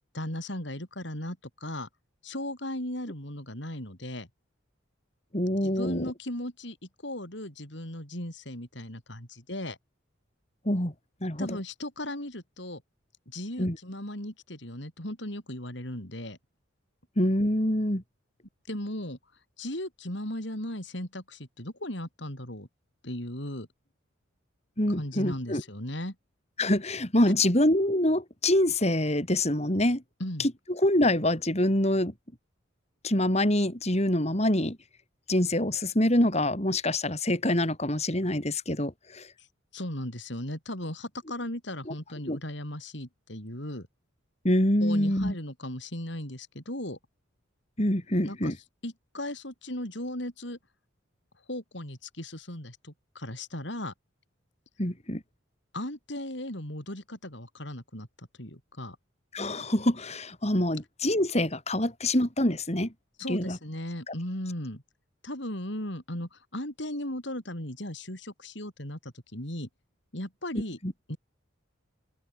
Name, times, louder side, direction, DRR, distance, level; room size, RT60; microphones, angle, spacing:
voice 1, 0.1-1.9 2.2-4.3 5.6-6.8 7.0-9.8 11.4-12.8 13.3-16.4 18.7-19.2 19.6-22.7 23.0-23.7 25.0-26.2 30.2-30.5 39.4-39.5 39.7-43.9 44.8-47.0 48.2-48.5 48.8-50.6 51.5-53.9 55.7-59.0 63.2-64.8 65.2-69.7 70.1-70.8 71.1-71.2, left 1 dB, 65° left, 7.2 m, -37 dB
voice 2, 5.3-6.1 10.6-10.9 11.2-11.6 13.6-13.8 17.2-18.0 24.8-25.6 26.6-30.0 30.4-32.1 33.0-34.8 35.3-39.3 41.9-42.0 42.3-42.4 44.4-45.3 47.8-48.6 54.8-55.2 59.3-62.9 63.3-63.6 64.1-64.2 70.8-70.9, left 1 dB, 35° left, 4.6 m, -25 dB
open air
head